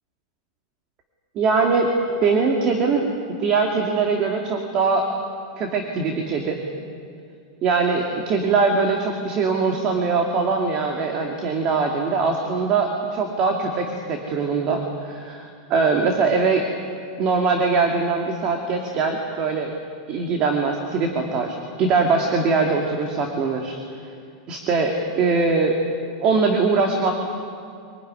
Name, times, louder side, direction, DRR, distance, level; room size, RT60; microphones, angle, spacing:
voice 1, 1.4-1.9 2.2-3.1 3.4-5.0 5.6-6.6 7.6-14.8 15.0-16.6 17.2-19.7 20.1-23.8 24.5-25.7 26.2-27.1, right 4 dB, 35° right, 2 dB, 2.5 m, -22 dB
24.5 x 18.5 x 9.9 m, 2.4 s
supercardioid pair, 145°, 2 cm